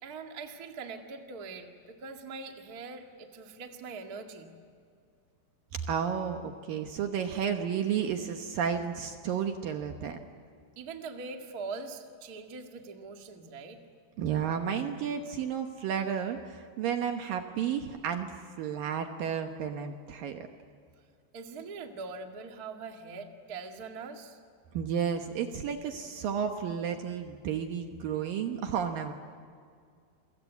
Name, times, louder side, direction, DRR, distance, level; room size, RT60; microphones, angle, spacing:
voice 1, 0.0-4.5 10.7-13.8 21.3-24.4, right 4 dB, 35° right, 3 dB, 1.5 m, -42 dB
voice 2, 5.9-10.2 14.2-20.5 24.7-29.1, right 7 dB, 70° right, 5 dB, 2.4 m, -32 dB
29.5 x 24.0 x 8.3 m, 2.2 s
omnidirectional pair, 5.0 m